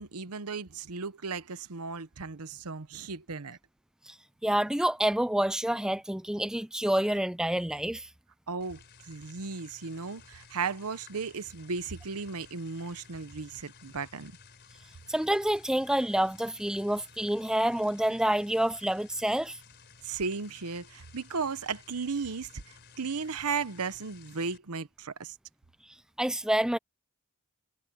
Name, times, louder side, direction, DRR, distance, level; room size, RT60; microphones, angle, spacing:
voice 1, 0.0-3.6 8.5-14.3 20.0-25.3, right 5 dB, 85° right, 1.0 m, -35 dB
voice 2, 4.4-8.1 15.1-19.6 26.2-26.8, right 1 dB, 5° right, 0.4 m, -28 dB
sound 1, 8.6-24.6, left 5 dB, 50° left, 4.5 m, -55 dB
head